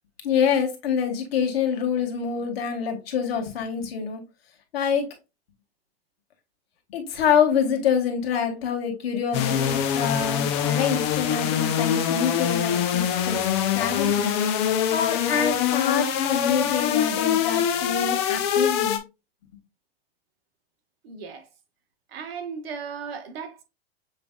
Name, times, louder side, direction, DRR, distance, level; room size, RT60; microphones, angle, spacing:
voice 1, 0.2-4.2 4.7-5.1 6.9-13.4 13.7-14.3 14.9-19.0, left 7 dB, 70° left, 1.8 m, -26 dB
sound 1, 9.3-19.0, left 9 dB, 25° left, 0.5 m, -24 dB
voice 2, 21.0-21.5 22.1-23.6, right 6 dB, 70° right, 1.4 m, -36 dB
7.0 x 3.3 x 2.2 m
supercardioid pair, 165°, 31 cm